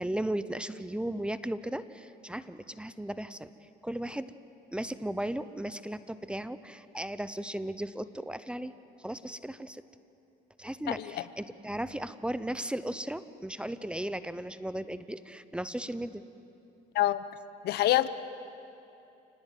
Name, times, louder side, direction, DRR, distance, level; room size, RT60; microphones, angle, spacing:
voice 1, 0.0-3.5 3.8-4.3 4.7-8.7 9.0-9.8 10.6-16.2, right 1 dB, 5° right, 14 dB, 0.8 m, -36 dB
voice 2, 10.9-11.2 16.9-17.2 17.6-18.1, left 15 dB, 70° left, 15 dB, 0.9 m, -26 dB
29.0 x 18.5 x 9.3 m, 2.8 s
cardioid pair, 110°, 17 cm